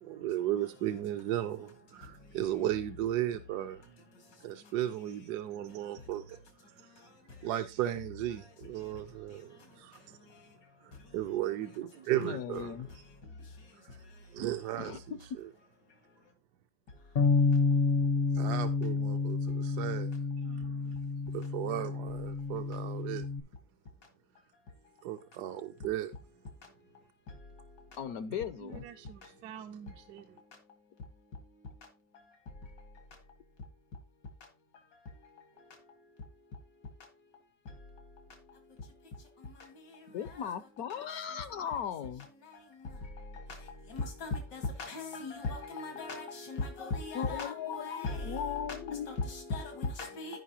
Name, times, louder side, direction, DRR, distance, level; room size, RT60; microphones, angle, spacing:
voice 1, 0.0-3.8 4.4-6.4 6.7-6.9 7.4-10.2 10.8-13.0 13.7-14.0 14.3-15.0 15.4-15.5 18.3-20.9 21.3-23.3 25.0-26.1 28.6-30.3, right 12 dB, 75° right, 1.1 m, -36 dB
voice 2, 12.2-12.9 14.8-15.0 28.0-28.8 40.1-42.3 47.1-49.1, left 8 dB, 70° left, 1.0 m, -37 dB
Bass guitar, 17.2-23.4, left 4 dB, 50° left, 0.6 m, -29 dB
voice 3, 40.2-40.5 41.7-41.8 42.4-42.6 43.2-50.4, left 3 dB, 85° left, 2.5 m, -38 dB
15.0 x 5.3 x 2.8 m
omnidirectional pair, 1.8 m